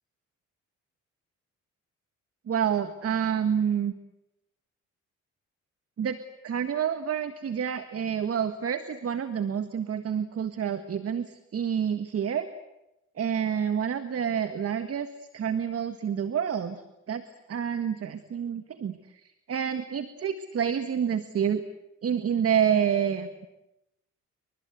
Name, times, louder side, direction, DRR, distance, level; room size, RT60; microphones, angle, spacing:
voice 1, 2.5-3.9 6.0-6.2 6.4-12.5 13.2-15.1 15.3-16.8 17.1-17.2 17.5-21.6 22.0-23.5, right 8 dB, 50° right, 10 dB, 1.7 m, -28 dB
29.0 x 24.5 x 8.2 m, 0.91 s
cardioid pair, 90°, 30 cm